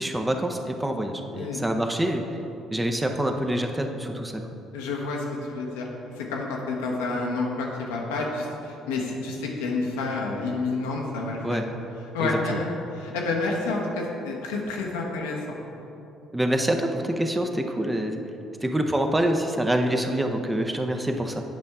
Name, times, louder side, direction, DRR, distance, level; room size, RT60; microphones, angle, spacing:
voice 1, 0.0-2.2 2.7-4.4 11.4-11.6 12.2-12.6 16.3-18.2 18.6-21.4, right 1 dB, 10° right, 4 dB, 0.7 m, -26 dB
voice 2, 4.7-5.9 6.2-11.6 12.1-15.6, left 3 dB, 85° left, -1 dB, 0.9 m, -29 dB
8.4 x 5.3 x 3.5 m, 2.9 s
hypercardioid pair, 60°, 0 cm